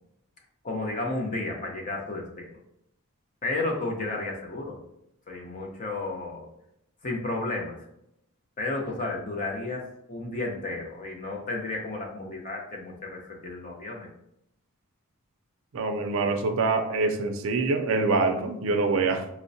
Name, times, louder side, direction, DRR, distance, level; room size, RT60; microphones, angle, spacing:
voice 1, 0.6-2.5 3.4-4.8 5.3-6.5 7.0-7.8 8.6-14.1, left 2 dB, 35° left, 0 dB, 0.6 m, -32 dB
voice 2, 15.7-19.3, right 3 dB, 65° right, 6 dB, 0.4 m, -25 dB
4.3 x 2.0 x 2.6 m, 0.78 s
head